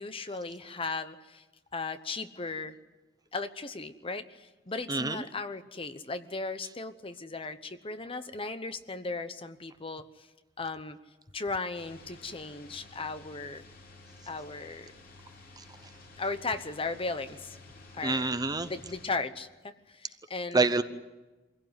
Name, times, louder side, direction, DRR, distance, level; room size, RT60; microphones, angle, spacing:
voice 1, 0.0-1.4 1.7-2.7 3.3-10.1 10.6-11.0 11.3-13.6 14.3-14.9 16.2-17.6 17.9-18.3 18.7-19.5 20.0-20.7, left 3 dB, 30° left, 11 dB, 1.0 m, -36 dB
voice 2, 4.9-5.2 15.6-15.7 18.0-18.7 20.5-20.8, right 3 dB, 20° right, 10 dB, 0.8 m, -27 dB
sound 1, 11.7-19.2, left 3 dB, 50° left, 3.2 m, -52 dB
24.0 x 16.5 x 9.6 m, 1.1 s
head